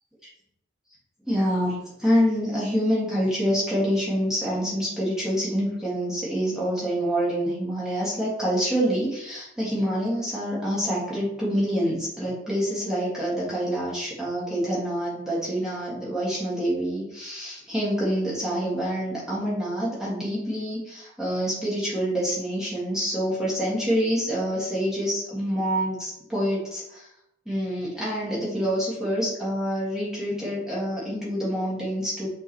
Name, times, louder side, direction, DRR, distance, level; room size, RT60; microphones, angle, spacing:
voice 1, 1.2-27.1 27.5-32.3, equal, 5° right, -8 dB, 1.9 m, -26 dB
7.9 x 3.9 x 3.1 m, 0.81 s
head